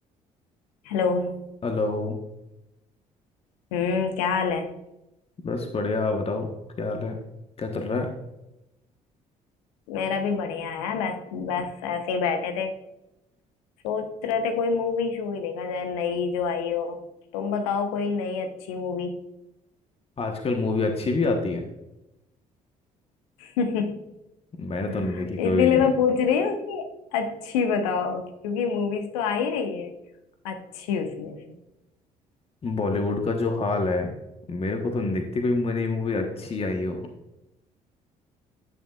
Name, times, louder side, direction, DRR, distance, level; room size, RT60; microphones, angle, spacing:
voice 1, 0.8-1.5 3.7-4.7 9.9-12.7 13.8-17.0 17.3-19.1 23.4-24.0 24.9-26.9 27.1-29.9 30.4-31.4, left 6 dB, 70° left, 6 dB, 1.0 m, -26 dB
voice 2, 1.6-2.1 5.4-6.5 6.8-7.2 7.6-8.1 20.2-21.6 24.6-25.8 32.6-34.1 34.5-37.0, left 3 dB, 30° left, 4 dB, 1.2 m, -26 dB
10.5 x 8.7 x 2.4 m, 0.92 s
figure-of-eight pair, 50°, 19 cm